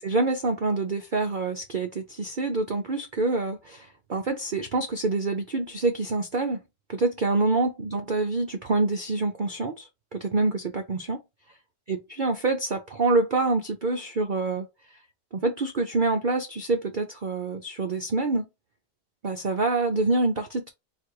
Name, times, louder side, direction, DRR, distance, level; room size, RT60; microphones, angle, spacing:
voice 1, 0.0-6.6 6.9-11.2 11.9-14.7 15.3-18.4 19.2-20.7, right 3 dB, 85° right, 0.4 m, -26 dB
4.1 x 2.5 x 4.6 m
omnidirectional pair, 1.8 m